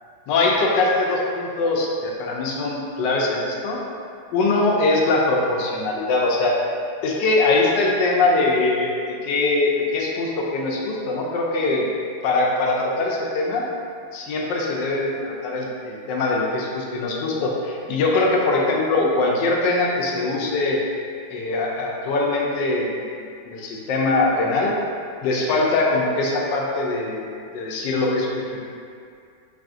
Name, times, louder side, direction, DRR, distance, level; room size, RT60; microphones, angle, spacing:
voice 1, 0.3-3.8 4.3-6.6 7.0-11.9 12.2-13.7 14.1-20.8 21.3-23.0 23.4-24.7 25.2-28.6, left 2 dB, 80° left, -2 dB, 1.2 m, -22 dB
4.0 x 2.5 x 3.6 m, 2.3 s
omnidirectional pair, 2.0 m